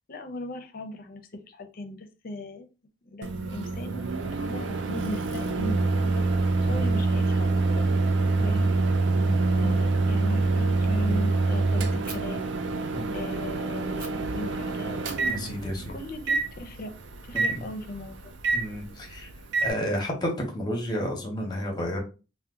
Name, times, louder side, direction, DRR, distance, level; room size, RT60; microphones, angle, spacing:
voice 1, 0.0-2.7 3.0-6.3 6.6-7.9 8.4-8.7 9.5-12.5 12.8-12.9 13.1-15.0 15.9-16.9 17.2-18.3, left 2 dB, 50° left, 7 dB, 0.5 m, -38 dB
Microwave oven, 3.2-19.7, right 3 dB, 80° right, 0.4 m, -26 dB
voice 2, 8.4-8.7 9.1-9.4 12.9-13.2 15.2-15.9 17.3-17.6 18.5-19.3 19.6-22.0, equal, 25° left, 1 dB, 0.8 m, -31 dB
Fire, 12.0-12.2 14.0-14.1 15.0-17.0, right 4 dB, 50° right, 0.7 m, -45 dB
2.8 x 2.1 x 3.5 m, 0.32 s
head